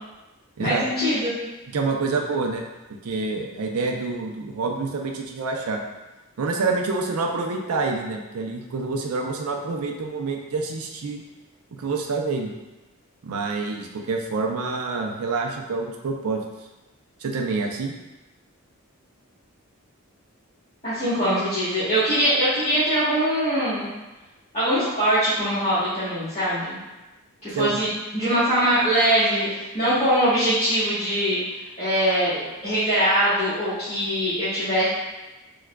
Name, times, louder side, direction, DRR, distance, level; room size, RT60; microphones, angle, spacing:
voice 1, 0.6-1.3 20.8-23.9 24.5-26.8 27.4-27.9 28.1-31.4 31.8-34.9, equal, 30° left, -16 dB, 1.2 m, -22 dB
voice 2, 1.7-2.7 3.0-5.8 6.4-11.2 11.8-12.5 13.2-16.4 17.2-18.0 27.6-27.8, right 3 dB, 75° right, 2 dB, 0.4 m, -27 dB
4.5 x 2.3 x 2.2 m, 1.1 s
head